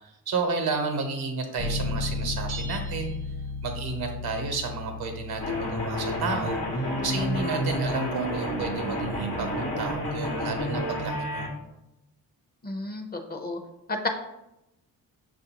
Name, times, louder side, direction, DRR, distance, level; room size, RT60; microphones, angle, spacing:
voice 1, 0.3-3.1 3.6-6.6 7.0-11.5, right 4 dB, 75° right, 4 dB, 0.8 m, -31 dB
Bass guitar, 1.6-11.4, left 3 dB, 55° left, 0.7 m, -37 dB
sound 1, 2.5-4.1, right 5 dB, 45° right, 0.4 m, -43 dB
sound 2, 5.4-11.5, equal, 85° left, 1.0 m, -30 dB
voice 2, 12.6-13.6 13.9-14.1, left 2 dB, 25° left, 4 dB, 0.5 m, -31 dB
6.0 x 2.5 x 2.8 m, 0.90 s
cardioid pair, 75°, 38 cm